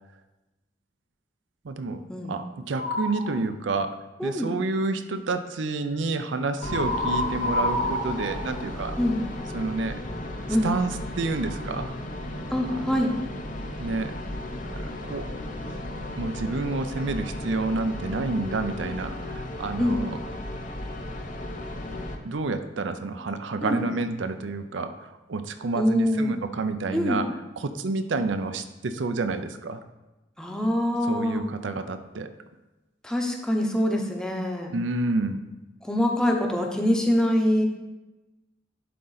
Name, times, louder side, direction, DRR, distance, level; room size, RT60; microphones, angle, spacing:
voice 1, 1.6-3.9 4.2-9.0 9.5-10.0 10.6-11.9 12.7-13.0 13.8-14.1 14.6-15.3 16.1-20.2 22.2-27.3 27.6-29.8 31.1-32.3 34.7-35.5, right 3 dB, 90° right, 9 dB, 0.5 m, -29 dB
sound 1, 2.7-3.3 6.6-9.3, left 1 dB, 85° left, 2.2 m, -28 dB
voice 2, 4.2-4.5 9.0-9.2 10.5-10.7 12.5-13.1 19.8-20.0 23.6-23.8 25.8-26.3 26.9-27.2 30.4-31.4 33.0-34.7 35.8-37.7, left 1 dB, 5° left, 1 dB, 0.8 m, -24 dB
sound 2, 6.6-22.1, left 1 dB, 45° left, 0.7 m, -35 dB
11.0 x 3.8 x 4.0 m, 1.1 s
head